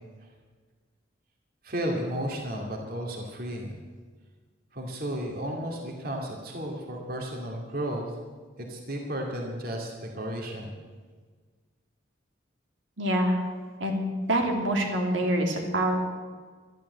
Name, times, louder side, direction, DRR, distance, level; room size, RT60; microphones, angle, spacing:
voice 1, 1.6-3.8 4.7-8.1 8.6-10.8, equal, 50° right, 0 dB, 2.4 m, -33 dB
voice 2, 13.0-13.4 13.8-16.1, right 1 dB, 80° right, 1 dB, 2.7 m, -26 dB
12.5 x 12.0 x 8.0 m, 1.5 s
head